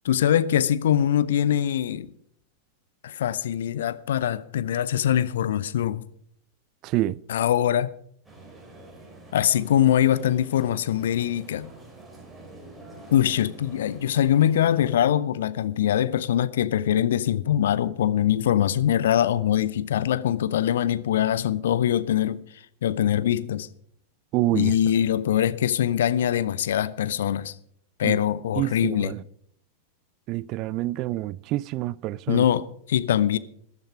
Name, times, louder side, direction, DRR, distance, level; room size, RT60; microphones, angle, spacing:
voice 1, 0.0-2.1 3.0-6.0 7.3-7.9 9.3-11.7 13.1-22.4 22.8-23.7 24.5-27.6 28.0-29.1 32.3-33.4, left 10 dB, 60° left, 0.6 m, -23 dB
voice 2, 6.8-7.2 24.3-24.7 28.0-28.2 28.6-29.2 30.3-32.4, right 16 dB, 40° right, 0.4 m, -27 dB
sound 1, 8.2-14.9, right 2 dB, 5° right, 4.2 m, -46 dB
13.5 x 11.0 x 4.9 m
figure-of-eight pair, 90°, 0 cm